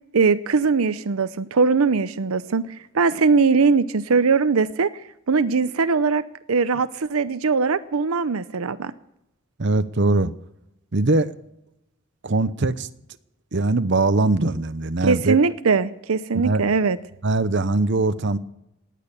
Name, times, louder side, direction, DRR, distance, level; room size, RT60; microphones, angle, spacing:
voice 1, 0.1-4.9 5.3-8.9 15.0-17.0, right 4 dB, 90° right, 14 dB, 0.7 m, -20 dB
voice 2, 9.6-10.3 10.9-11.3 12.2-12.9 13.5-15.4 16.3-16.7 17.2-18.4, right 2 dB, 55° right, 13 dB, 0.9 m, -21 dB
18.5 x 11.0 x 6.9 m, 0.83 s
head